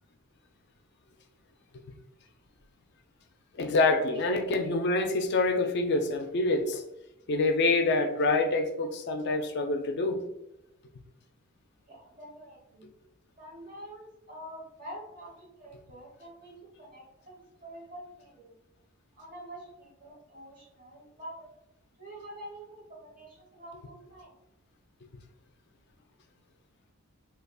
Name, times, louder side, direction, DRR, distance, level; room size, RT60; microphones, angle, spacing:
voice 1, 3.5-6.8 7.3-10.2, left 3 dB, 50° left, 5 dB, 0.4 m, -26 dB
voice 2, 11.9-12.9 13.4-18.5 19.2-21.5 22.0-24.3, right 1 dB, 40° right, -3 dB, 1.1 m, -47 dB
3.7 x 2.3 x 2.2 m, 0.87 s
head